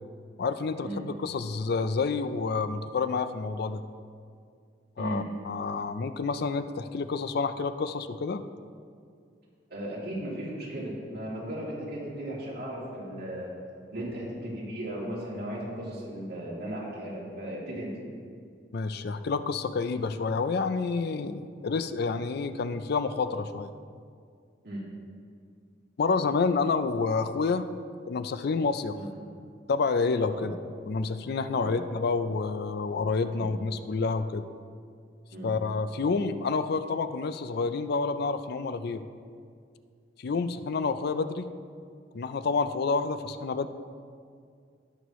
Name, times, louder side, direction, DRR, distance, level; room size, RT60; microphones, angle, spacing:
voice 1, 0.4-3.8 5.0-8.4 18.7-23.7 26.0-27.7 28.1-29.0 29.7-30.6 30.9-34.4 35.4-39.0 40.2-41.5 42.1-43.7, left 4 dB, 60° left, 11 dB, 0.4 m, -29 dB
voice 2, 9.7-13.5 13.9-17.9 24.6-24.8 28.9-29.1 30.3-30.5 31.5-31.7 33.3-33.4 35.3-35.5 40.3-40.4, right 1 dB, 60° right, -5 dB, 2.7 m, -36 dB
18.0 x 6.4 x 3.1 m, 2.2 s
head